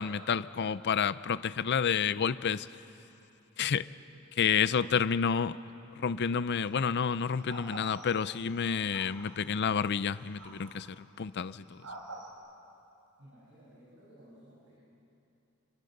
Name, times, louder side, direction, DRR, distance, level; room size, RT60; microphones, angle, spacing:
voice 1, 0.0-2.7 3.6-3.9 4.4-5.6 6.0-11.8, left 6 dB, 50° left, 16 dB, 0.5 m, -29 dB
sound 1, 6.5-6.7 7.4-8.5 8.9-9.5 10.4-10.9 11.8-12.3, right 2 dB, 90° right, 3.9 m, -46 dB
voice 2, 13.2-14.8, equal, 60° right, -8 dB, 7.7 m, -56 dB
29.0 x 23.5 x 6.6 m, 2.9 s
head